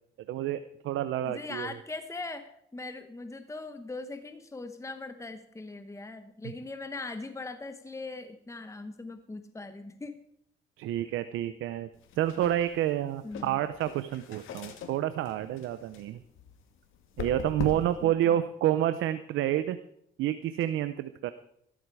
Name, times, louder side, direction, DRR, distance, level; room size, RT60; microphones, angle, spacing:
voice 1, 0.3-1.7 10.8-11.9 12.2-16.2 17.2-19.8 20.2-21.3, right 12 dB, 85° right, 12 dB, 0.7 m, -29 dB
voice 2, 1.2-10.2 13.2-13.6 17.7-18.4, left 3 dB, 15° left, 9 dB, 1.1 m, -40 dB
sound 1, 11.9-18.1, left 6 dB, 85° left, 2.0 m, -42 dB
14.5 x 13.5 x 4.8 m, 0.72 s
cardioid pair, 90°, 20 cm